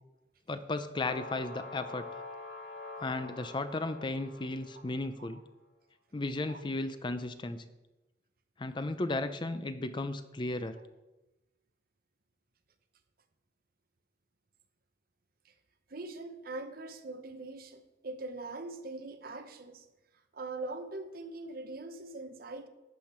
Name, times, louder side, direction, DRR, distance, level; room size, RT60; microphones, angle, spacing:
voice 1, 0.5-2.0 3.0-5.4 6.1-7.6 8.6-10.8, left 2 dB, 25° left, 11 dB, 0.5 m, -35 dB
sound 1, 1.0-5.1, left 3 dB, 80° left, 1.9 m, -45 dB
voice 2, 15.9-19.9 20.3-22.7, right 2 dB, 50° right, 8 dB, 0.9 m, -42 dB
11.5 x 8.4 x 4.4 m, 1.0 s
head